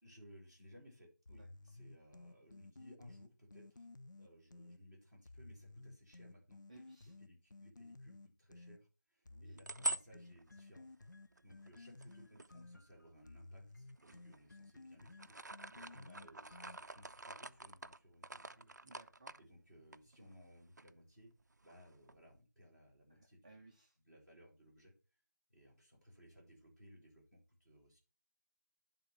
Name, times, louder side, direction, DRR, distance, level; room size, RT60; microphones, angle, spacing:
voice 1, 0.0-3.9 4.2-6.6 7.2-10.9 11.4-15.4 15.7-18.7 19.4-21.3 21.6-23.6 24.0-24.9 25.5-28.0, equal, 5° left, -12 dB, 3.1 m, -61 dB
sound 1, 1.3-4.8 5.3-8.8 9.3-17.1, left 2 dB, 75° left, 0.5 m, -56 dB
voice 2, 6.7-7.1 9.3-9.6 14.1-14.2 15.7-15.9 18.8-19.3 23.1-24.0, right 2 dB, 25° right, 0 dB, 0.8 m, -61 dB
sound 2, 9.3-13.3 13.9-14.7 15.0-20.5 20.8-20.9 21.2-22.4, right 1 dB, 65° right, 0.5 m, -46 dB
10.0 x 3.7 x 5.7 m, 0.33 s
figure-of-eight pair, 165°, 10 cm